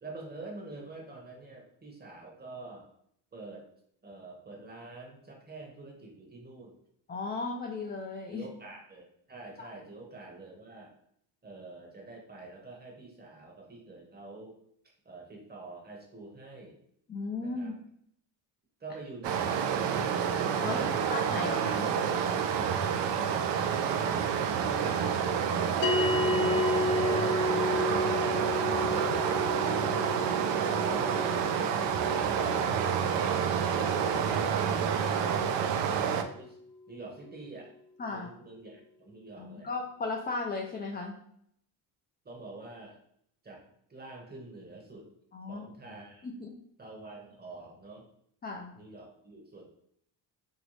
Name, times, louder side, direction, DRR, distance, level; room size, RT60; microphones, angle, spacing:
voice 1, 0.0-2.9 3.3-3.7 4.0-6.8 8.3-10.9 11.4-14.5 15.0-16.8 17.4-17.8 18.8-20.1 30.4-31.7 36.9-37.7 38.1-39.7 42.2-43.0 43.4-43.6 43.9-45.1 45.5-46.4 46.8-48.1 48.7-49.7, right 2 dB, 20° right, 1 dB, 0.8 m, -46 dB
voice 2, 7.1-8.5 9.6-9.7 17.1-17.7 20.6-21.9 26.3-26.6 38.0-38.3 39.4-41.2 45.3-45.7 46.2-46.5 48.4-48.8, left 3 dB, 25° left, 0 dB, 0.3 m, -36 dB
Stream, 19.2-36.2, right 7 dB, 70° right, 0.5 m, -28 dB
sound 1, 25.8-36.4, left 3 dB, 75° left, 0.6 m, -33 dB
3.0 x 2.7 x 3.1 m, 0.70 s
cardioid pair, 100°, 45 cm